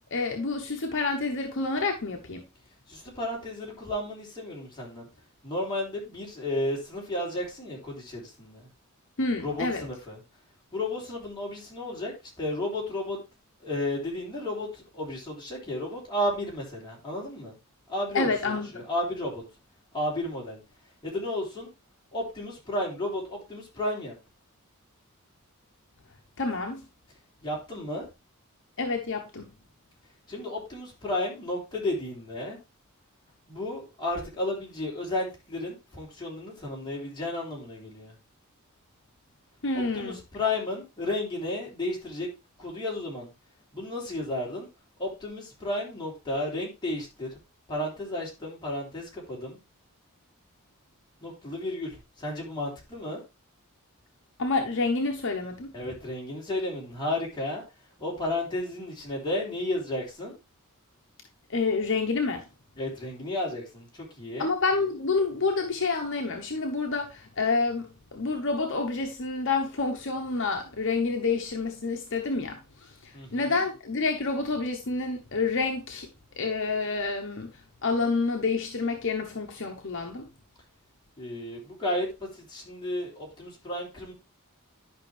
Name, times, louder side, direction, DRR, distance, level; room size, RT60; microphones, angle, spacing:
voice 1, 0.1-2.4 9.2-9.8 18.1-18.9 26.4-26.8 28.8-29.5 39.6-40.2 54.4-55.7 61.5-62.4 64.4-76.1 76.4-77.5 77.8-80.3, left 3 dB, 60° left, 1.0 m, -28 dB
voice 2, 2.9-5.1 5.4-8.7 9.4-10.2 10.7-13.2 13.6-17.5 17.9-19.4 19.9-20.6 21.0-21.7 22.1-24.1 27.4-28.1 30.3-32.6 33.5-38.2 39.7-42.3 42.6-43.3 43.7-44.7 45.0-47.3 47.7-49.6 51.2-53.2 55.7-57.6 58.0-60.4 62.8-64.5 73.1-73.6 81.2-84.1, left 1 dB, 20° left, 3.4 m, -33 dB
11.0 x 5.5 x 3.3 m
head